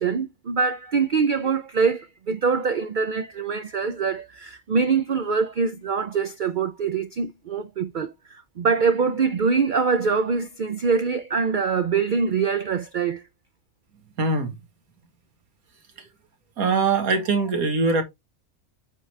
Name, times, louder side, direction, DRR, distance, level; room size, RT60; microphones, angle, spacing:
voice 1, 0.0-13.2, right 5 dB, 65° right, 0.4 m, -24 dB
voice 2, 14.2-14.5 16.6-18.0, right 4 dB, 85° right, 1.9 m, -22 dB
8.2 x 3.7 x 3.2 m
omnidirectional pair, 1.5 m